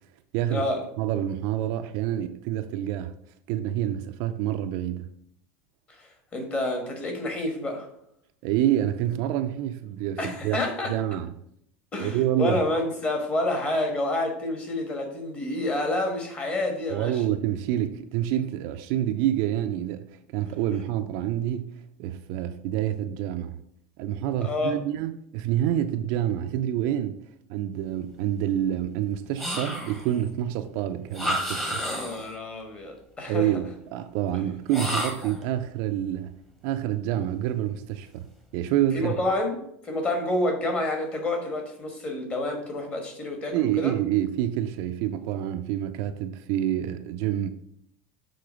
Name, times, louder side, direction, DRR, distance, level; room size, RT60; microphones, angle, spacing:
voice 1, 0.3-0.7 1.0-3.1 3.5-5.0 8.4-10.6 10.9-11.3 12.0-12.6 16.9-23.6 24.0-27.2 27.5-31.8 33.3-36.3 36.6-39.1 43.5-47.5, right 11 dB, 55° right, 0.5 m, -27 dB
voice 2, 5.9-7.9 10.2-10.9 11.9-17.2 24.4-24.8 31.6-33.6 38.9-43.9, left 2 dB, 20° left, 1.4 m, -29 dB
sound 1, 29.4-30.2 31.1-32.4 34.7-35.4, equal, 5° left, 1.1 m, -30 dB
6.7 x 3.8 x 5.1 m
supercardioid pair, 160°, 7 cm